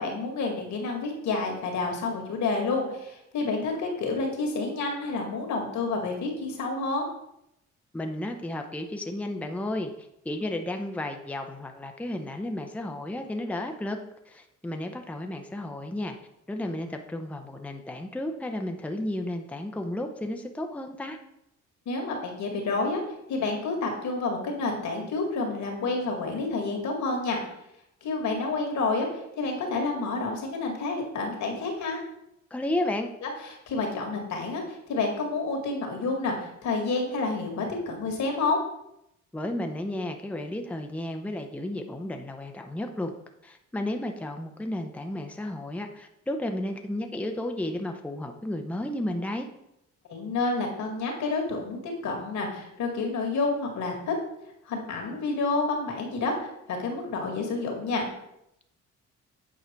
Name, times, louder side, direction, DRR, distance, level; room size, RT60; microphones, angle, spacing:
voice 1, 0.0-7.0 21.9-23.0 23.3-27.4 28.0-32.0 33.2-38.6 50.1-54.1 54.7-58.1, left 3 dB, 70° left, 1 dB, 2.2 m, -29 dB
voice 2, 7.9-14.0 14.3-16.2 16.5-21.2 32.5-33.1 39.3-43.1 43.4-49.5, left 1 dB, 5° left, 4 dB, 0.7 m, -33 dB
8.3 x 4.9 x 4.5 m, 0.81 s
cardioid pair, 90°, 30 cm